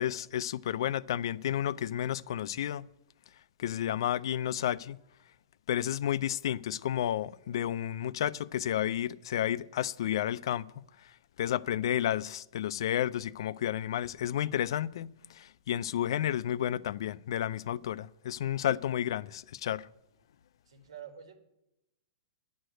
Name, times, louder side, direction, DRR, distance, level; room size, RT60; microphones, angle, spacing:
voice 1, 0.0-2.9 3.6-5.0 5.7-10.8 11.4-19.9, left 11 dB, 60° left, 0.4 m, -31 dB
voice 2, 20.7-21.4, right 8 dB, 85° right, 1.8 m, -47 dB
10.0 x 6.5 x 9.1 m
hypercardioid pair, 160°, 3 cm